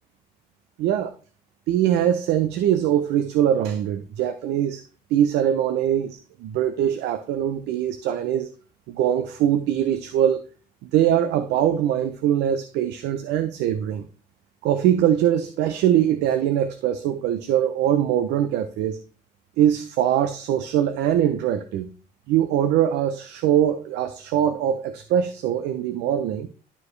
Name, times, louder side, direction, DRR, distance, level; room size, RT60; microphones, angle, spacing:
voice 1, 0.8-1.1 1.7-4.8 5.1-8.5 8.9-10.4 10.8-14.1 14.6-19.0 19.6-21.9 22.3-26.5, right 10 dB, 85° right, 0.7 m, -22 dB
12.0 x 4.9 x 3.2 m
cardioid pair, 110°, 17 cm